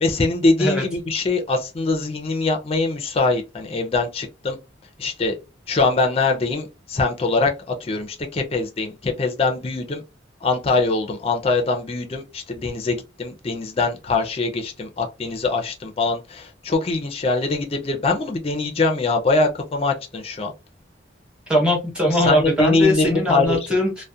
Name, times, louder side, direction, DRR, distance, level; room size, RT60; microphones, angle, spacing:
voice 1, 0.0-4.6 5.0-5.3 5.7-10.0 10.4-20.5 22.2-23.6, left 3 dB, 30° left, 0.4 m, -23 dB
voice 2, 21.5-24.0, left 1 dB, 5° right, 0.9 m, -20 dB
2.3 x 2.1 x 2.6 m
head